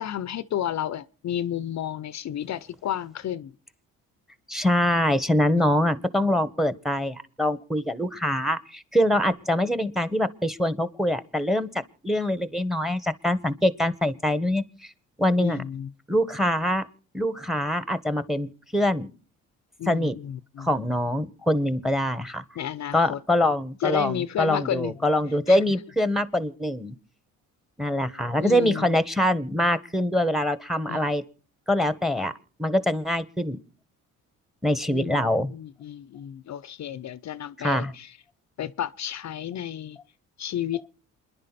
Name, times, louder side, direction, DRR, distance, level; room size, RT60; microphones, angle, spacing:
voice 1, 0.0-3.5 15.4-15.9 19.8-20.7 22.6-23.2 23.8-24.9 25.5-25.6 28.4-29.0 30.9-31.0 34.9-38.2 38.6-40.0 40.4-40.8, left 10 dB, 55° left, 0.7 m, -32 dB
voice 2, 4.5-14.9 15.2-15.6 16.1-16.8 17.1-19.1 19.9-20.1 20.6-22.4 22.9-26.9 27.8-31.2 31.7-32.3 32.6-33.6 34.6-35.5 37.6-37.9, left 1 dB, ahead, 1.5 m, -24 dB
28.0 x 11.0 x 4.2 m
supercardioid pair, 75°, 33 cm